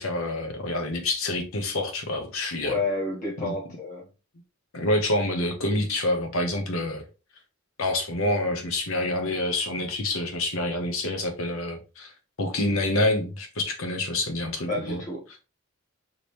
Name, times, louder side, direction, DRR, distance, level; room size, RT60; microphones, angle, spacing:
voice 1, 0.0-2.8 3.4-3.5 4.7-7.0 7.8-12.1 12.4-15.0, left 1 dB, 70° left, 1.0 m, -27 dB
voice 2, 2.6-4.1 14.7-15.2, left 3 dB, 35° left, 2.2 m, -30 dB
4.9 x 3.1 x 3.3 m
head